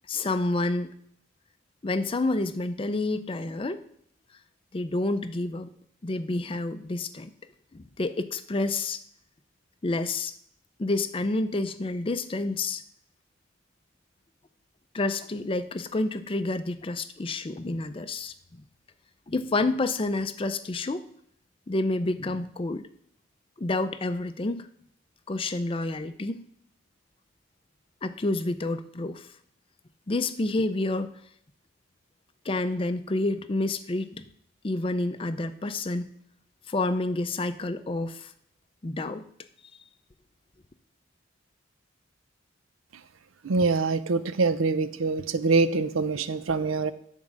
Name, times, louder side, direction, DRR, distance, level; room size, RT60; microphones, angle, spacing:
voice 1, 0.1-0.9 1.8-3.8 4.7-5.7 6.0-7.3 7.7-9.0 9.8-10.3 10.8-12.8 14.9-18.3 19.3-21.0 21.7-22.9 23.6-24.7 25.3-26.4 28.0-29.3 30.1-31.1 32.5-34.2 34.6-36.1 36.7-38.3 38.8-39.2, left 2 dB, 25° left, 10 dB, 0.5 m, -29 dB
voice 2, 43.4-46.9, right 3 dB, 90° right, 13 dB, 0.6 m, -24 dB
10.5 x 3.6 x 7.4 m, 0.66 s
head